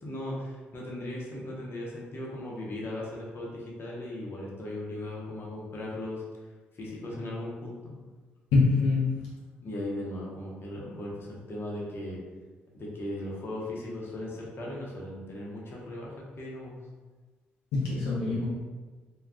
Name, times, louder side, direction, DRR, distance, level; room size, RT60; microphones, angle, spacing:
voice 1, 0.0-6.2 6.8-7.9 9.6-12.2 12.7-16.7, left 1 dB, 50° left, -4 dB, 0.8 m, -37 dB
voice 2, 8.5-9.1 17.7-18.5, left 3 dB, 80° left, -7 dB, 0.7 m, -24 dB
2.3 x 2.2 x 3.5 m, 1.3 s
hypercardioid pair, 50°, 5 cm